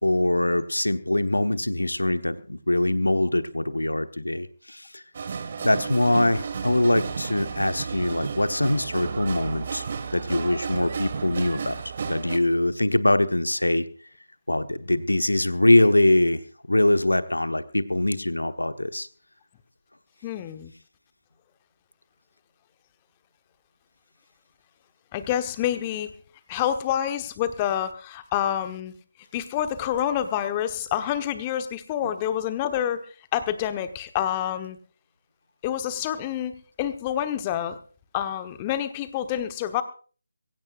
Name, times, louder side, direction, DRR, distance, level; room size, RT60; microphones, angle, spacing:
voice 1, 0.0-5.0 5.6-9.8 10.1-11.8 12.1-13.8 14.5-16.4 16.7-19.1, left 1 dB, 75° left, 10 dB, 1.2 m, -23 dB
sound 1, 5.1-12.4, right 5 dB, 40° right, 1.6 m, -33 dB
voice 2, 20.2-20.7 25.1-26.1 26.5-28.9 29.3-33.1 33.3-34.8 35.6-37.8 38.1-39.8, left 10 dB, 20° left, 9 dB, 1.1 m, -28 dB
23.0 x 17.0 x 2.5 m, 0.40 s
figure-of-eight pair, 155°, 0 cm